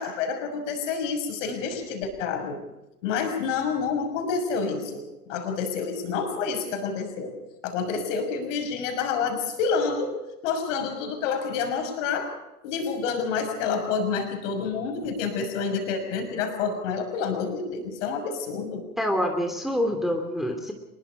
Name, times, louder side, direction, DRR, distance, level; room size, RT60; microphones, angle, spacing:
voice 1, 0.0-2.6 3.0-7.3 7.6-10.2 10.4-12.3 12.6-18.8, left 5 dB, 55° left, 6 dB, 6.2 m, -28 dB
voice 2, 19.0-20.7, equal, ahead, 3 dB, 2.8 m, -26 dB
25.5 x 21.5 x 5.1 m, 0.93 s
figure-of-eight pair, 90°, 46 cm